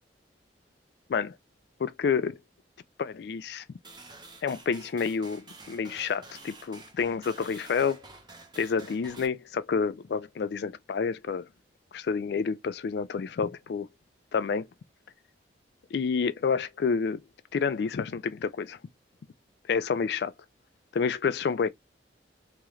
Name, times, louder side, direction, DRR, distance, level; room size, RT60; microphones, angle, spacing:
voice 1, 1.8-2.4 3.0-3.7 4.4-8.0 8.6-11.5 11.9-13.9 14.3-14.7 15.9-17.2 17.5-18.8 19.7-20.3 20.9-21.7, left 5 dB, 60° left, 0.3 m, -29 dB
sound 1, 3.8-9.3, right 3 dB, 25° right, 0.7 m, -49 dB
3.5 x 2.9 x 3.1 m
head